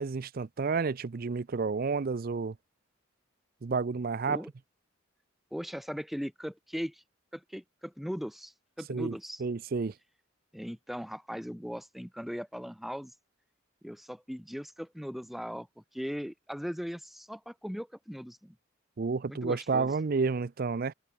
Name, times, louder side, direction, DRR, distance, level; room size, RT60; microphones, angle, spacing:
voice 1, 0.0-2.6 3.6-4.4 8.9-9.9 19.0-20.9, right 4 dB, 50° right, 0.5 m, -30 dB
voice 2, 5.5-7.0 7.3-9.4 10.5-13.1 13.8-18.5 19.3-19.9, equal, ahead, 3.1 m, -39 dB
head